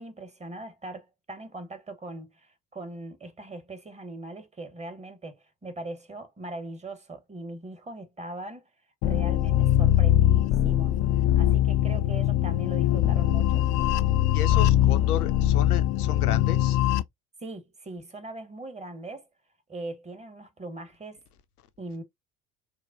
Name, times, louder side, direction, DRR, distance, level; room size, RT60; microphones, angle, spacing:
voice 1, 0.0-8.6 9.0-13.6 17.4-19.3 19.7-21.2 21.8-22.0, right 2 dB, 15° right, 1.0 m, -40 dB
sound 1, 9.0-17.0, left 12 dB, 40° left, 0.4 m, -22 dB
voice 2, 14.3-16.8, left 10 dB, 80° left, 0.6 m, -33 dB
4.7 x 2.1 x 2.5 m
figure-of-eight pair, 65°, 44 cm